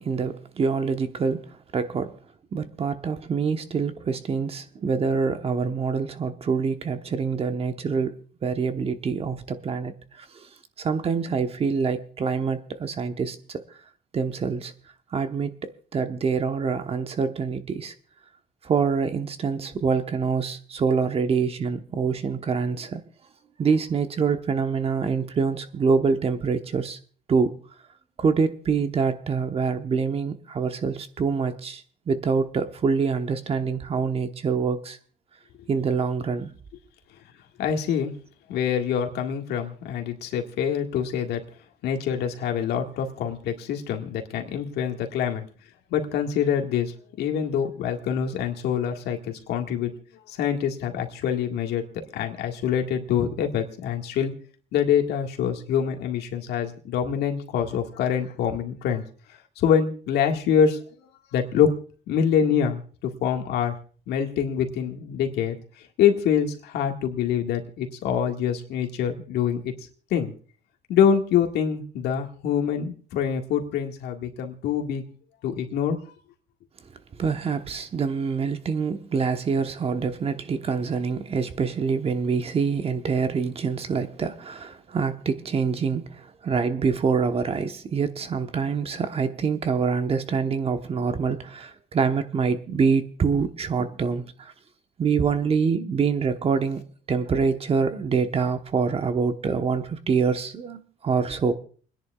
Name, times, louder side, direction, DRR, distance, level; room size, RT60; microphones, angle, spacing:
voice 1, 0.0-1.4 1.7-2.1 2.5-9.9 10.8-13.6 14.1-14.7 15.1-17.9 18.6-23.0 23.6-27.0 27.3-27.5 28.2-35.0 35.7-36.5 77.2-94.5 95.0-96.8 97.1-101.5, right 5 dB, 35° right, 1.0 m, -25 dB
voice 2, 37.6-38.1 38.5-41.4 41.8-45.5 45.9-50.0 50.3-51.9 52.1-54.3 54.7-59.1 59.6-60.8 61.3-61.7 62.1-63.8 64.1-65.6 66.0-69.7 70.1-70.3 70.9-75.0 75.4-76.0, left 8 dB, 75° left, 1.8 m, -25 dB
29.0 x 10.5 x 2.4 m
cardioid pair, 110°, 17 cm